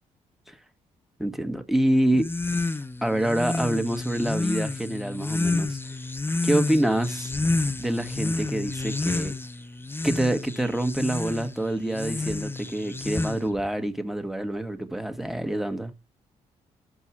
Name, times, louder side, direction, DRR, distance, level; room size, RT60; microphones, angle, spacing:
voice 1, 1.2-2.3 2.6-2.7 3.0-5.8 6.4-7.3 7.8-9.3 10.0-15.9, right 1 dB, ahead, 1.8 m, -26 dB
sound 1, 2.1-13.7, left 2 dB, 15° left, 0.7 m, -29 dB
6.0 x 5.5 x 6.1 m
hypercardioid pair, 50°, 16 cm